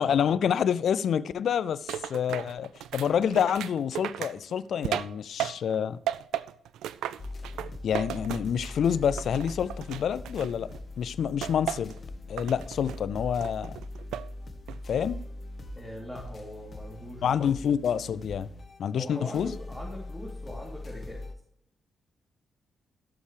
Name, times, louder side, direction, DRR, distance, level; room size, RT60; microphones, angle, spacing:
voice 1, 0.0-6.0 7.8-10.7 11.0-11.9 12.3-13.8 14.9-15.2 17.2-18.5 18.8-19.5, left 8 dB, 65° left, 0.4 m, -27 dB
sound 1, 1.9-5.8 6.1-8.9 9.2-10.8 11.4-12.0 12.4-13.0 13.4-14.3 14.7-15.1, right 11 dB, 75° right, 0.3 m, -35 dB
sound 2, 7.2-21.3, left 2 dB, 50° left, 1.9 m, -41 dB
voice 2, 15.7-17.5 18.9-21.2, equal, 10° right, 3.2 m, -41 dB
15.0 x 7.2 x 3.3 m
hypercardioid pair, 40°, 0 cm